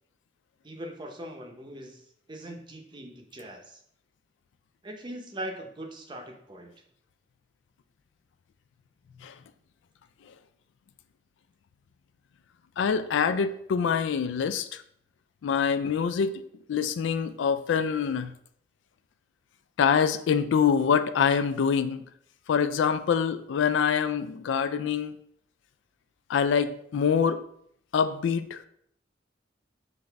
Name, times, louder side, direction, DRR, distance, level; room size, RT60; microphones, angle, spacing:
voice 1, 0.6-2.0 2.3-3.8 4.8-6.7, right 1 dB, 25° right, 3 dB, 0.6 m, -40 dB
voice 2, 12.8-14.8 15.4-16.4 16.7-18.3 19.8-22.0 22.5-25.2 26.3-27.4 27.9-28.6, left 6 dB, 90° left, 12 dB, 0.3 m, -25 dB
5.7 x 2.5 x 3.3 m, 0.68 s
head